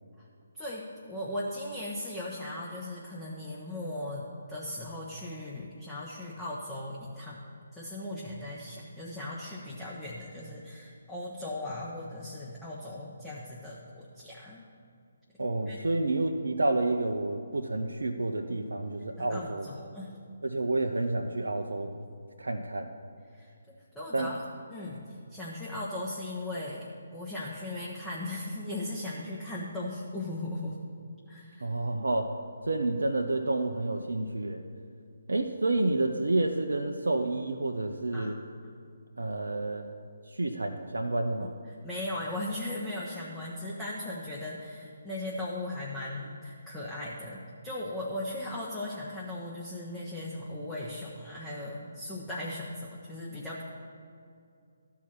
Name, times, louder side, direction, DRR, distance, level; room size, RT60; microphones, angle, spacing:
voice 1, 0.5-7.4 7.7-14.6 15.4-15.8 19.2-20.1 23.3-24.4 24.7-30.8 31.3-31.7 38.1-38.3 41.4-41.5 41.8-53.6, left 1 dB, 5° left, -6 dB, 1.1 m, -38 dB
voice 2, 15.4-19.7 20.4-21.9 22.4-22.9 24.1-24.3 31.6-32.3 32.7-34.6 35.3-38.3 39.2-39.9 40.3-41.5, right 2 dB, 70° right, 3 dB, 0.6 m, -29 dB
13.0 x 4.8 x 7.2 m, 2.4 s
figure-of-eight pair, 140°, 0 cm